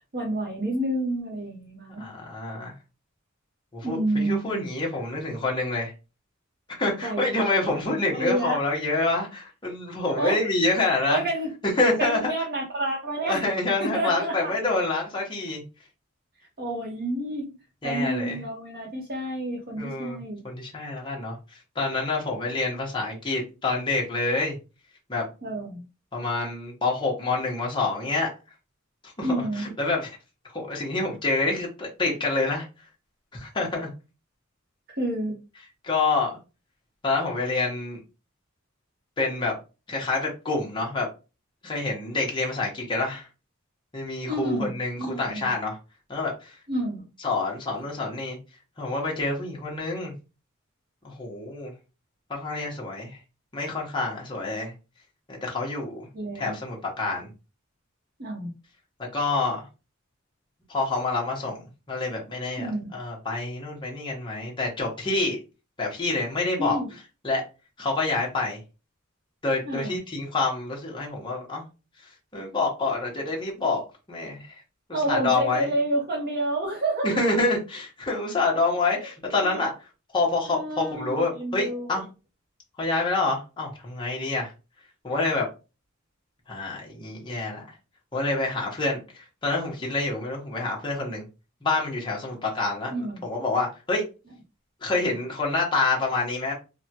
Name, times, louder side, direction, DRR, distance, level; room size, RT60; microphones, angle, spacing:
voice 1, 0.1-2.0 3.8-4.7 7.0-7.3 8.1-8.6 10.2-10.4 11.1-11.5 12.0-13.4 13.8-14.5 16.6-17.5 17.8-20.4 25.4-25.8 29.2-29.7 35.0-35.4 44.3-45.5 46.7-47.0 56.1-56.6 58.2-58.5 62.6-62.9 66.6-66.9 69.6-70.0 74.9-77.4 79.0-79.1 79.4-79.6 80.5-82.0 92.9-93.2, right 1 dB, 50° right, -3 dB, 0.9 m, -29 dB
voice 2, 2.0-2.7 3.7-5.9 6.8-11.2 11.8-12.3 13.3-15.6 17.8-18.4 19.8-21.4 21.8-24.6 25.1-25.2 26.1-28.3 29.0-30.1 30.5-32.7 33.3-33.9 35.8-36.3 37.0-38.0 39.2-39.5 39.9-41.1 41.6-43.3 43.9-45.8 46.1-46.5 47.2-48.4 48.8-50.1 51.0-51.7 52.3-53.2 53.5-54.7 55.3-56.1 56.3-57.3 59.1-59.6 60.7-61.6 61.9-65.4 65.8-66.8 67.2-67.4 67.8-68.6 69.4-71.6 72.3-73.8 74.1-74.5 75.1-75.7 77.0-79.7 80.1-82.0 82.8-84.5 85.0-85.5 86.5-87.7 88.1-91.2 91.6-92.9 93.2-94.0 94.8-96.5, left 3 dB, 25° left, -2 dB, 0.9 m, -27 dB
3.4 x 2.2 x 2.8 m, 0.30 s
head